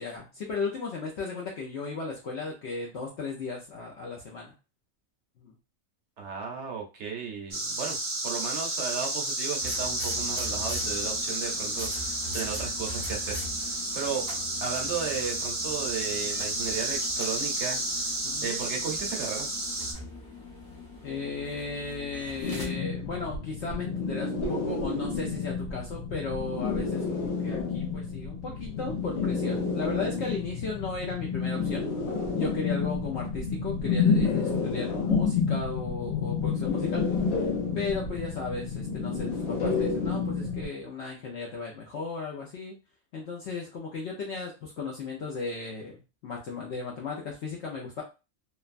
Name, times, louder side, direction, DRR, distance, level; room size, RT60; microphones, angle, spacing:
voice 1, 0.0-4.5 5.4-5.5 18.2-18.5 21.0-31.9 32.3-37.0 37.7-42.8 43.1-45.9 46.2-48.0, left 4 dB, 60° left, -1 dB, 0.8 m, -35 dB
voice 2, 6.2-8.0 8.2-14.2 14.6-18.1 18.4-19.5, right 6 dB, 60° right, 2 dB, 1.0 m, -35 dB
sound 1, 7.5-19.9, right 2 dB, 35° right, 0.5 m, -31 dB
sound 2, 9.6-22.7, left 2 dB, 25° left, 0.5 m, -42 dB
sound 3, 22.4-40.7, left 5 dB, 80° left, 1.3 m, -29 dB
3.2 x 2.2 x 2.4 m, 0.29 s
omnidirectional pair, 1.4 m